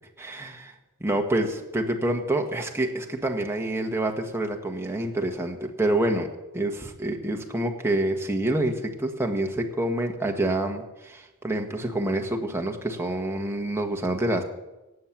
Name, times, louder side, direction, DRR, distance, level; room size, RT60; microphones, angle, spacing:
voice 1, 0.2-0.7 1.0-6.3 6.5-14.4, right 1 dB, 10° right, 2 dB, 1.4 m, -27 dB
17.5 x 7.6 x 7.4 m, 1.0 s
head